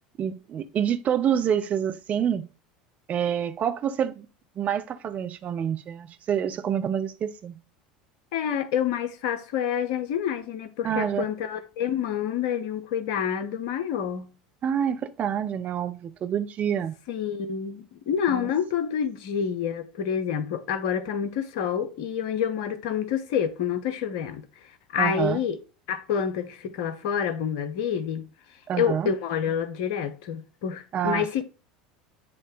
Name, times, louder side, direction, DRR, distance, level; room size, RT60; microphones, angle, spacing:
voice 1, 0.2-2.4 3.1-4.3 4.6-7.6 10.8-11.2 14.6-17.0 18.3-18.5 25.0-25.4 28.7-29.1 30.9-31.4, right 9 dB, 35° right, 0.8 m, -27 dB
voice 2, 8.3-14.3 17.1-24.4 24.9-25.6 25.9-28.3 28.7-31.4, left 8 dB, 60° left, 1.0 m, -28 dB
9.6 x 3.2 x 3.4 m
figure-of-eight pair, 75°, 4 cm